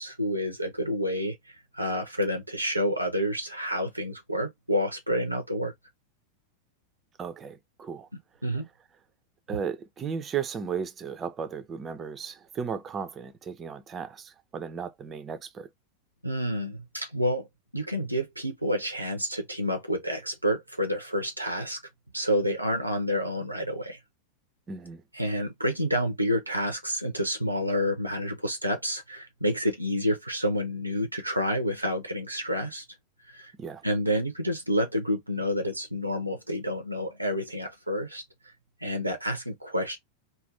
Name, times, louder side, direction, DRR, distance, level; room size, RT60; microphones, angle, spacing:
voice 1, 0.0-5.7 8.4-8.7 16.2-17.5 17.7-21.8 22.1-24.0 25.1-32.9 33.3-33.5 33.8-38.2 38.8-40.0, equal, 85° right, 0.4 m, -29 dB
voice 2, 7.2-8.1 9.5-15.7 24.7-25.0 33.6-33.8, right 7 dB, 25° right, 0.5 m, -35 dB
2.6 x 2.3 x 3.2 m
figure-of-eight pair, 90°, 0 cm